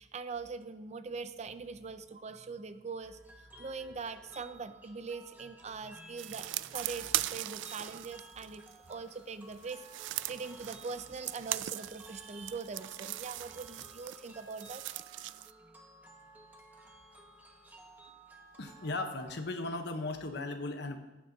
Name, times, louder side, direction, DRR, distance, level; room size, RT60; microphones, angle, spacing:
voice 1, 0.0-3.2 3.6-8.6 8.9-14.8, right 4 dB, 40° right, 11 dB, 0.5 m, -42 dB
sound 1, 3.0-19.4, right 2 dB, 10° right, 1.2 m, -55 dB
sound 2, 6.2-8.9 9.5-15.5, right 15 dB, 85° right, 0.3 m, -39 dB
voice 2, 18.6-21.0, left 2 dB, 65° left, 6 dB, 1.1 m, -37 dB
15.0 x 11.0 x 2.8 m, 1.0 s
head